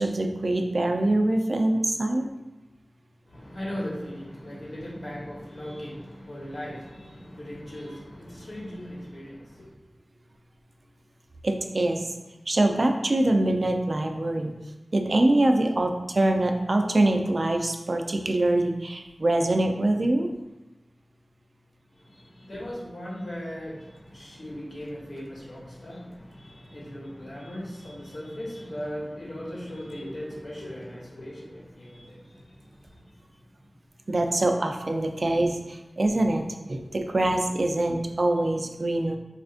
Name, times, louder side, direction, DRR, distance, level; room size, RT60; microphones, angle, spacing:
voice 1, 0.0-2.3 11.4-12.0 12.5-14.5 14.9-20.3 34.1-39.2, right 1 dB, 60° right, 4 dB, 0.3 m, -24 dB
voice 2, 3.3-9.7 21.9-33.1, equal, 75° left, -5 dB, 1.0 m, -38 dB
4.2 x 2.4 x 2.4 m, 1.0 s
wide cardioid pair, 55°, 0 cm